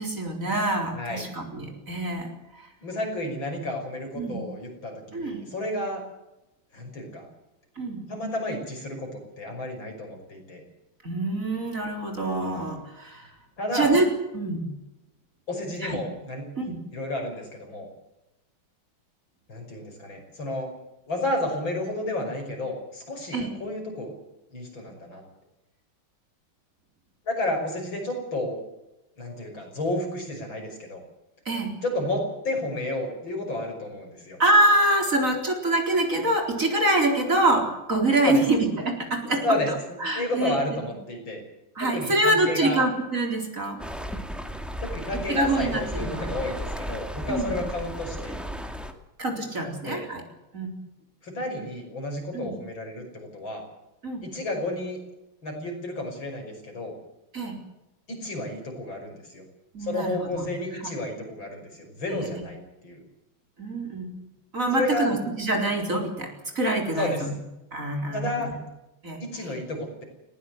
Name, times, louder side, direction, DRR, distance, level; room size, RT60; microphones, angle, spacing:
voice 1, 0.0-2.3 2.6-2.7 4.1-4.4 5.1-5.4 7.8-8.0 11.0-13.3 13.7-14.1 14.3-14.7 15.8-16.0 16.6-16.8 23.3-23.5 31.5-31.7 34.4-39.6 40.0-40.6 41.8-43.8 45.3-46.3 47.3-47.6 49.2-50.2 50.5-50.8 52.3-52.5 54.0-54.2 57.3-57.6 59.7-60.5 60.8-60.9 62.1-62.3 63.6-64.1 64.5-67.3 67.7-68.5 69.0-69.2, right 2 dB, 40° right, 3 dB, 4.5 m, -25 dB
voice 2, 0.9-1.3 2.8-6.0 6.7-7.3 8.1-10.6 13.6-13.9 15.5-16.5 16.9-17.9 19.5-20.7 21.1-24.1 24.5-25.2 27.3-28.6 29.2-31.0 31.8-34.4 38.2-38.4 39.3-39.7 40.1-41.4 41.8-42.8 44.8-48.4 49.8-50.0 51.2-53.6 54.2-55.0 55.4-56.9 58.1-59.4 59.8-63.0 64.7-65.1 66.9-67.2 68.1-68.5 69.2-70.0, left 1 dB, 70° left, 3 dB, 6.6 m, -31 dB
sound 1, 43.8-48.9, equal, ahead, 1.9 m, -34 dB
20.5 x 18.0 x 7.9 m, 0.94 s
omnidirectional pair, 2.2 m